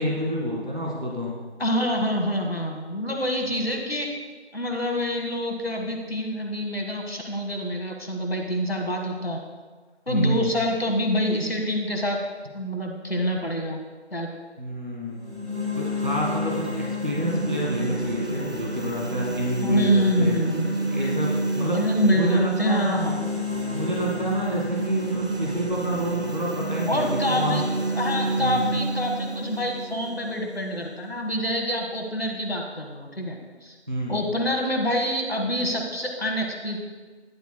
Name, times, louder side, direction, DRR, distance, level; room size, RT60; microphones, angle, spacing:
voice 1, 0.0-1.4 10.1-10.5 14.6-15.4 15.8-20.4 20.9-23.1 23.7-27.6 28.4-28.8 33.9-34.2, equal, 45° right, -3 dB, 1.7 m, -28 dB
voice 2, 1.6-4.1 4.5-9.4 10.1-12.2 12.5-13.8 14.1-14.3 19.6-20.8 21.7-23.2 26.9-33.7 34.1-36.8, equal, 60° left, 2 dB, 1.5 m, -26 dB
sound 1, 15.2-31.2, right 1 dB, 70° right, 2.0 m, -29 dB
10.5 x 10.0 x 2.2 m, 1.4 s
figure-of-eight pair, 180°, 34 cm